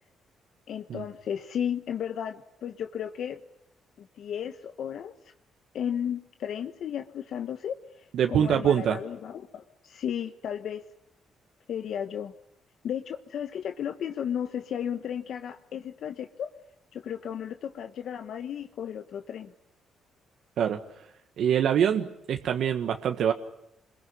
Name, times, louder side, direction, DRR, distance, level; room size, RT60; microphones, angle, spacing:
voice 1, 0.7-3.4 4.0-5.1 5.7-10.9 11.7-12.3 12.8-16.5 16.9-19.5, left 9 dB, 65° left, 8 dB, 1.2 m, -34 dB
voice 2, 8.1-9.0 20.6-20.8 21.4-23.3, right 9 dB, 70° right, 5 dB, 1.6 m, -24 dB
27.0 x 22.0 x 9.8 m, 0.82 s
cardioid pair, 90°, 0 cm